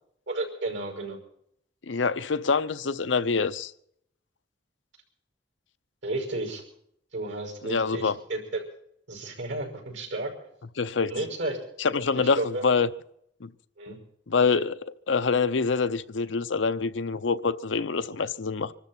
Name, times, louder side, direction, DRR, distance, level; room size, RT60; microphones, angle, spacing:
voice 1, 0.3-1.2 6.0-6.6 7.1-8.6 9.1-10.3 11.1-11.6 12.1-12.7 13.8-14.0, right 2 dB, 80° right, 5.7 m, -32 dB
voice 2, 1.8-3.7 7.6-8.1 10.8-11.1 11.8-12.9 13.4-13.5 14.3-18.7, left 4 dB, 85° left, 0.7 m, -26 dB
25.5 x 13.0 x 4.4 m
head